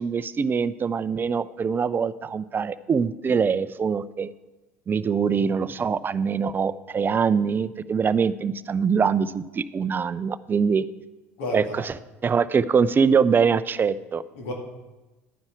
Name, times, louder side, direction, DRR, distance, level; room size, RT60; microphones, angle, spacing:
voice 1, 0.0-4.3 4.9-10.8 11.5-12.0 12.2-14.2, right 6 dB, 25° right, 16 dB, 0.5 m, -23 dB
voice 2, 5.1-5.5 11.4-11.8 14.4-14.5, left 2 dB, 65° left, 1 dB, 2.4 m, -33 dB
11.0 x 9.6 x 4.6 m, 1.1 s
figure-of-eight pair, 65°, 8 cm